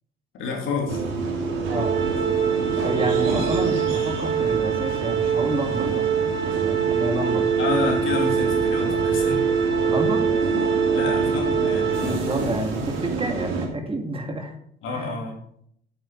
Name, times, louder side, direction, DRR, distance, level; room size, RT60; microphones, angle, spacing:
voice 1, 0.3-1.0 7.6-9.4 10.9-12.1 14.8-15.5, left 4 dB, 80° left, 0 dB, 2.8 m, -29 dB
sound 1, 0.9-13.7, right 3 dB, 90° right, 2.7 m, -26 dB
Organ, 1.7-12.6, right 8 dB, 65° right, 1.8 m, -25 dB
voice 2, 2.8-7.5 9.9-10.3 11.8-14.5 14.9-15.2, right 1 dB, 30° right, 4 dB, 2.0 m, -29 dB
8.4 x 8.3 x 4.5 m, 0.67 s
cardioid pair, 90°, 20 cm